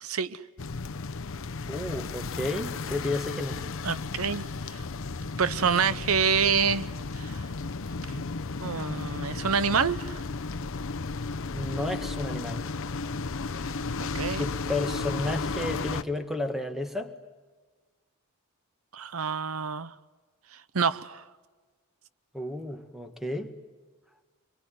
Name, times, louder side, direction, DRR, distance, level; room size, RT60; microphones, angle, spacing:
voice 1, 0.0-0.4 3.8-4.8 5.4-6.9 7.2-7.4 8.1-8.2 8.6-10.2 14.1-14.5 18.9-19.9 20.7-21.2, right 6 dB, 75° right, 0.8 m, -27 dB
sound 1, 0.6-16.0, left 4 dB, 65° left, 0.8 m, -34 dB
voice 2, 1.7-3.6 11.5-12.7 14.4-17.1 22.3-23.5, left 2 dB, ahead, 1.9 m, -32 dB
26.0 x 23.5 x 9.9 m
head